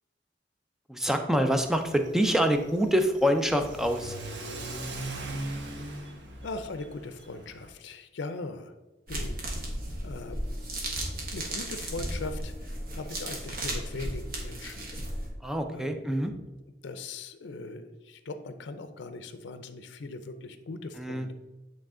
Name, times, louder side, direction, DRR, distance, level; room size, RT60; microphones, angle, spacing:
voice 1, 0.9-4.2 15.4-16.3 21.0-21.3, equal, ahead, 6 dB, 0.4 m, -26 dB
Car / Accelerating revving vroom, 1.5-7.7, right 2 dB, 75° right, 0.8 m, -40 dB
voice 2, 5.5-6.0 6.4-8.7 9.1-9.7 10.0-10.4 11.3-14.9 15.6-15.9 16.8-21.3, left 3 dB, 80° left, 10 dB, 0.5 m, -40 dB
sound 1, 9.1-15.3, right 1 dB, 55° right, 1.4 m, -35 dB
8.9 x 3.3 x 3.7 m, 1.1 s
head